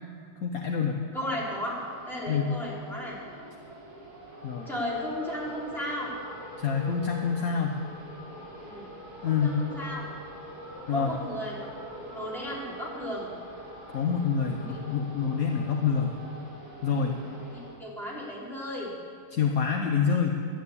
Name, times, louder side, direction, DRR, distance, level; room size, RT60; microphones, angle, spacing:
voice 1, 0.4-1.0 2.3-2.5 4.4-4.7 6.6-7.8 9.2-9.6 10.9-11.1 13.9-16.1 16.8-17.1 19.3-20.4, left 6 dB, 60° left, 3 dB, 1.2 m, -26 dB
voice 2, 1.1-1.8 2.1-3.2 4.7-6.1 7.4-7.5 8.6-8.9 9.2-10.0 10.9-13.3 14.7-14.8 16.9-17.2 17.5-18.9, equal, ahead, -7 dB, 3.7 m, -35 dB
sound 1, 1.4-17.7, equal, 65° right, 4.5 m, -44 dB
12.0 x 9.9 x 8.3 m, 2.2 s
omnidirectional pair, 1.8 m